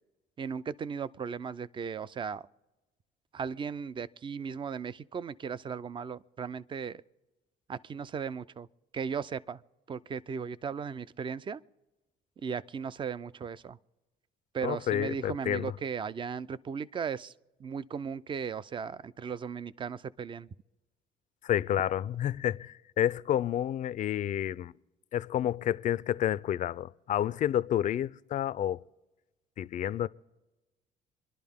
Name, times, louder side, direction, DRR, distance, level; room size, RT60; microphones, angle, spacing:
voice 1, 0.4-2.5 3.3-7.0 7.7-8.7 8.9-9.6 9.9-11.6 12.4-13.8 14.5-17.3 17.6-20.5, right 6 dB, 30° right, 0.5 m, -36 dB
voice 2, 14.6-15.7 21.4-24.7 25.1-28.8 29.6-30.1, left 11 dB, 50° left, 0.5 m, -30 dB
26.5 x 11.5 x 3.6 m
cardioid pair, 110°, 17 cm